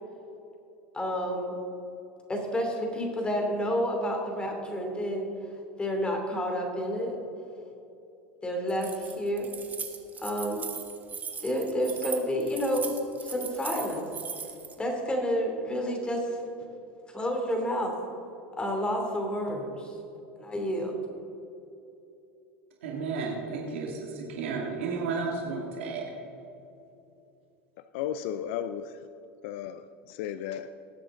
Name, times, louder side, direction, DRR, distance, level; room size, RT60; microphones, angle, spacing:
voice 1, 0.9-1.5 2.3-5.3 5.8-7.2 8.4-9.5 10.2-10.6 11.4-12.9 13.2-14.0 14.8-16.4 17.1-17.9 18.6-19.9 20.4-21.0, equal, 15° left, 2 dB, 2.9 m, -29 dB
Keys jangling, 8.7-14.7, right 6 dB, 25° right, 1.5 m, -39 dB
voice 2, 22.8-26.1, right 4 dB, 80° right, -1 dB, 2.3 m, -33 dB
voice 3, 27.8-29.1 29.4-30.7, left 10 dB, 70° left, 12 dB, 0.5 m, -35 dB
19.0 x 7.9 x 3.8 m, 2.9 s
hypercardioid pair, 100°, 7 cm